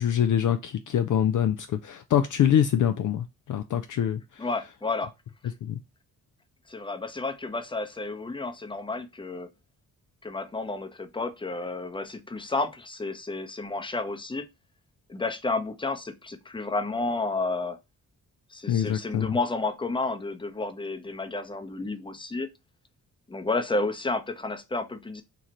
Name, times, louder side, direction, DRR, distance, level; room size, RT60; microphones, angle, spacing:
voice 1, 0.0-4.5 5.6-5.8 18.7-19.3, left 9 dB, 50° left, 0.4 m, -25 dB
voice 2, 4.4-5.1 6.7-9.5 10.2-14.4 15.1-17.8 18.5-22.5 23.3-25.2, left 3 dB, 10° left, 0.7 m, -31 dB
3.0 x 2.4 x 4.3 m
supercardioid pair, 45°, 40 cm